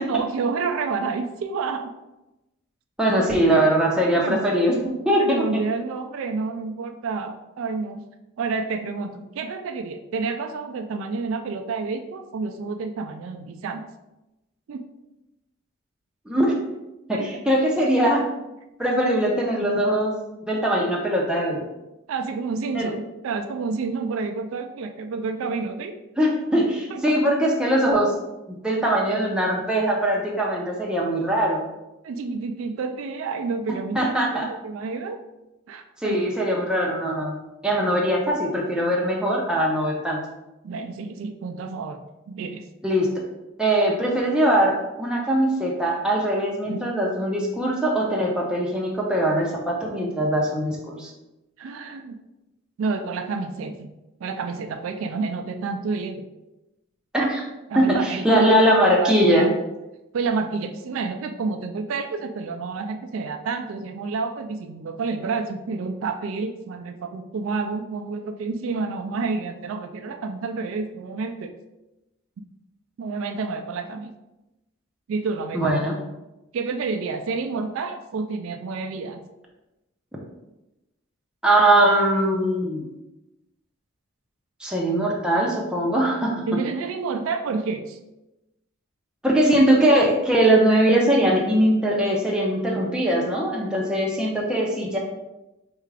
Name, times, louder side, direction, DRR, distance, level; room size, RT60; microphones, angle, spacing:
voice 1, 0.1-1.9 3.1-3.5 4.1-4.5 5.2-8.0 8.4-13.8 14.7-14.9 17.1-17.4 22.1-25.9 26.9-27.0 32.0-35.2 35.7-36.3 37.7-37.9 40.6-42.0 42.3-42.6 46.7-46.8 51.6-52.2 52.8-53.9 54.2-56.3 57.7-58.5 58.9-59.4 60.1-71.5 73.0-74.1 75.1-75.8 76.5-79.2 86.5-88.0, right 4 dB, 75° right, 7 dB, 0.3 m, -29 dB
voice 2, 3.0-4.8 5.1-5.4 16.3-16.5 17.1-18.2 18.8-20.1 20.5-21.6 22.7-22.9 26.2-28.1 28.5-31.7 33.9-34.5 36.0-37.4 37.6-40.2 42.8-43.1 43.6-51.1 57.1-57.4 57.8-59.5 75.5-75.9 81.4-82.9 84.6-86.3 89.2-95.0, right 1 dB, 5° right, -3 dB, 0.5 m, -21 dB
4.5 x 2.4 x 3.2 m, 0.98 s
head